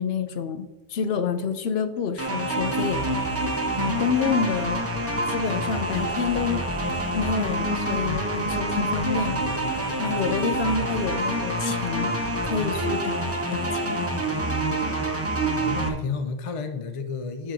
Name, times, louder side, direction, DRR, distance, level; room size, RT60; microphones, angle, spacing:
voice 1, 0.0-4.8 5.3-6.7 7.1-9.5 10.0-12.2 12.4-14.1, left 6 dB, 70° left, 10 dB, 0.9 m, -28 dB
sound 1, 2.2-15.9, right 1 dB, 15° right, 0.9 m, -27 dB
voice 2, 15.6-17.5, left 5 dB, 40° left, 7 dB, 0.5 m, -31 dB
7.1 x 5.5 x 5.0 m, 1.1 s
omnidirectional pair, 1.1 m